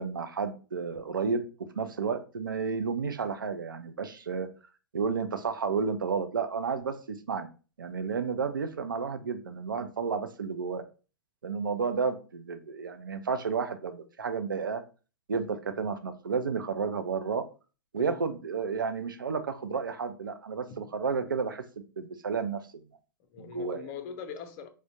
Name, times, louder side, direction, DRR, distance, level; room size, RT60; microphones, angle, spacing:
voice 1, 0.0-1.4 1.8-4.5 4.9-7.5 7.8-10.8 11.4-14.8 15.3-17.4 17.9-21.6 22.0-22.8 23.4-23.9, right 5 dB, 80° right, 0.5 m, -31 dB
voice 2, 18.0-18.3 20.7-20.9 23.3-24.7, left 7 dB, 40° left, 0.6 m, -42 dB
5.0 x 2.1 x 2.7 m
figure-of-eight pair, 100°, 11 cm